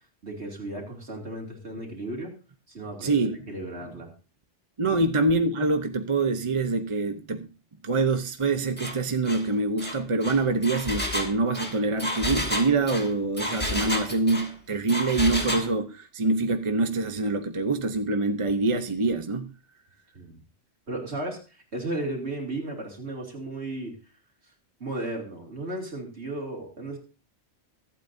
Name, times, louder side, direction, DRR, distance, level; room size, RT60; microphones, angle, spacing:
voice 1, 0.2-2.3 2.7-4.1 4.9-5.0 20.1-20.4 20.9-23.9 24.8-27.0, right 2 dB, 65° right, 3.0 m, -35 dB
voice 2, 3.0-3.4 4.8-7.5 7.8-19.5, right 3 dB, 30° right, 0.8 m, -25 dB
Engine, 8.8-9.0 9.3-9.4 9.8-14.5 14.9-15.7, left 1 dB, 10° left, 2.5 m, -31 dB
23.5 x 8.5 x 2.7 m
omnidirectional pair, 1.2 m